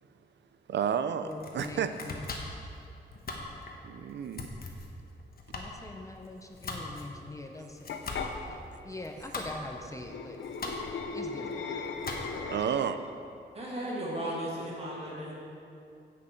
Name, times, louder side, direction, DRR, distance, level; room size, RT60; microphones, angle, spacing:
voice 1, 0.7-1.9 3.8-4.5 12.4-13.0, right 8 dB, 70° right, 10 dB, 0.5 m, -31 dB
Domestic sounds home sounds, 1.2-12.6, left 3 dB, 55° left, 1.1 m, -42 dB
voice 2, 1.2-2.2 5.6-7.8 8.5-8.6 8.8-10.4 10.6-10.7 11.1-11.6, left 2 dB, 15° left, 3 dB, 0.7 m, -42 dB
sound 1, 7.9-8.3 10.0-13.1, left 5 dB, 85° left, 0.7 m, -37 dB
voice 3, 13.5-15.4, right 1 dB, 35° right, -5 dB, 2.4 m, -35 dB
10.0 x 7.8 x 4.5 m, 2.6 s
wide cardioid pair, 130°, 19 cm